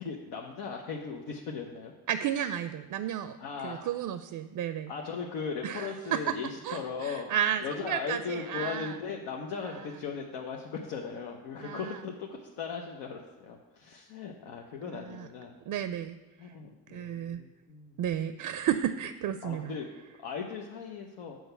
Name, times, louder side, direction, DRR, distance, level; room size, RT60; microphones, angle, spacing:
voice 1, 0.0-1.9 3.4-4.1 4.9-7.3 7.6-15.6 16.4-18.0 19.4-19.9 20.2-21.4, left 5 dB, 85° left, 0 dB, 0.8 m, -38 dB
voice 2, 2.1-3.4 3.6-4.9 5.6-6.4 6.6-8.9 11.6-12.0 15.1-15.3 15.7-16.2 16.9-17.4 18.0-19.7, right 10 dB, 55° right, 11 dB, 0.5 m, -32 dB
6.4 x 4.6 x 6.7 m, 1.2 s
supercardioid pair, 70°, 40 cm